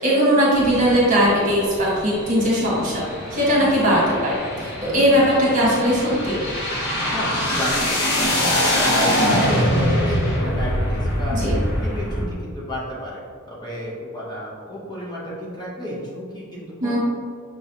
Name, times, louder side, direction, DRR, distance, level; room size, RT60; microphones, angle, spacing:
voice 1, 0.0-3.0 3.3-6.3 11.3-11.6 16.8-17.0, equal, 35° right, -6 dB, 1.4 m, -19 dB
sound 1, 0.5-12.2, equal, 50° left, 0.9 m, -24 dB
voice 2, 7.1-11.4 11.8-13.2 13.5-17.0, equal, 20° left, -7 dB, 0.8 m, -32 dB
6.0 x 3.1 x 2.8 m, 2.1 s
head